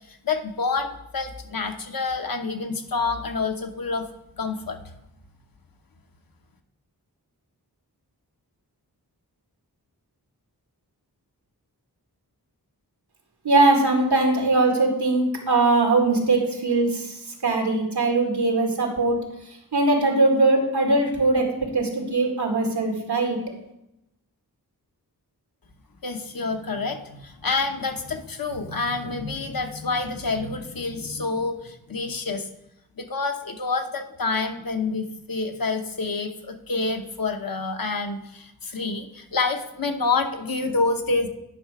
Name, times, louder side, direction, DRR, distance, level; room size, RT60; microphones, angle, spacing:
voice 1, 0.1-4.1 4.4-4.8 26.0-32.5 33.0-41.3, left 3 dB, 60° left, 5 dB, 1.0 m, -28 dB
voice 2, 13.4-19.2 19.5-23.4, right 2 dB, 85° right, 2 dB, 1.9 m, -21 dB
10.0 x 5.6 x 4.8 m, 0.86 s
wide cardioid pair, 55°, 39 cm